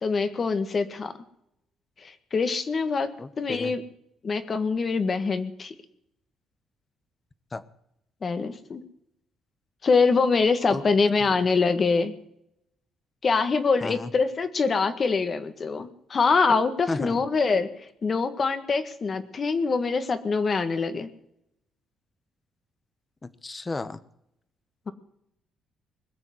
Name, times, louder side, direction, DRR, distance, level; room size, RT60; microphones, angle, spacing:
voice 1, 0.0-1.1 2.0-3.1 3.4-3.8 4.2-5.7 8.2-8.8 9.8-12.1 13.2-17.7 18.0-21.1, left 4 dB, 40° left, 11 dB, 1.7 m, -24 dB
voice 2, 3.2-3.7 7.5-7.6 10.7-10.8 13.8-14.1 16.9-17.2 23.2-24.0, left 3 dB, 20° left, 15 dB, 1.1 m, -33 dB
21.0 x 7.2 x 9.6 m, 0.78 s
cardioid pair, 105°, 0 cm